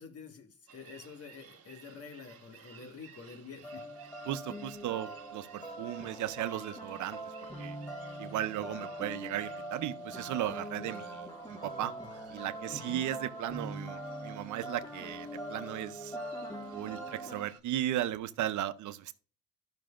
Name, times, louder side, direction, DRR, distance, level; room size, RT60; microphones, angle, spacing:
voice 1, 0.0-3.8 8.6-8.9 12.7-13.0, left 5 dB, 50° left, 1.8 m, -48 dB
sound 1, 0.7-17.6, right 7 dB, 50° right, 1.4 m, -57 dB
sound 2, 3.6-17.5, right 1 dB, 15° left, 1.8 m, -42 dB
voice 2, 4.3-7.2 7.6-7.8 8.2-11.9 12.3-16.2 16.7-19.1, right 12 dB, 75° right, 0.7 m, -36 dB
12.0 x 6.0 x 2.5 m
cardioid pair, 90°, 30 cm